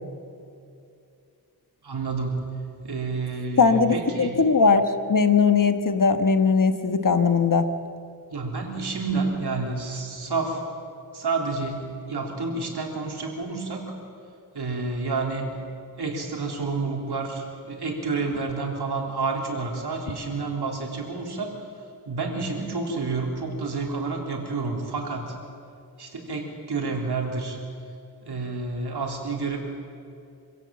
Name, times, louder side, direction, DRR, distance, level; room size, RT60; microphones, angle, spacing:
voice 1, 1.8-4.4 8.3-10.6 11.1-13.9 14.5-15.6 16.0-21.6 22.1-25.3 26.0-27.6 28.2-29.6, right 3 dB, 80° right, 0 dB, 3.6 m, -29 dB
voice 2, 3.6-4.8 5.1-7.7, left 5 dB, 55° left, 8 dB, 1.3 m, -19 dB
26.0 x 16.5 x 7.7 m, 2.6 s
wide cardioid pair, 85°, 39 cm